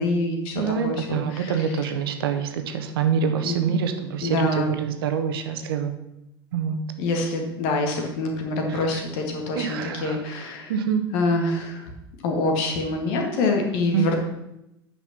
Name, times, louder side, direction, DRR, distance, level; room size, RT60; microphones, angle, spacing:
voice 1, 0.0-1.7 3.4-3.6 4.2-4.7 7.0-10.7 11.1-11.9 12.2-14.2, left 2 dB, 55° left, 2 dB, 2.1 m, -25 dB
voice 2, 0.5-5.9 6.5-6.8 8.7-9.0 9.5-11.1 13.9-14.0, right 7 dB, 65° right, 7 dB, 1.1 m, -26 dB
9.0 x 5.9 x 6.0 m, 0.86 s
figure-of-eight pair, 75°, 13 cm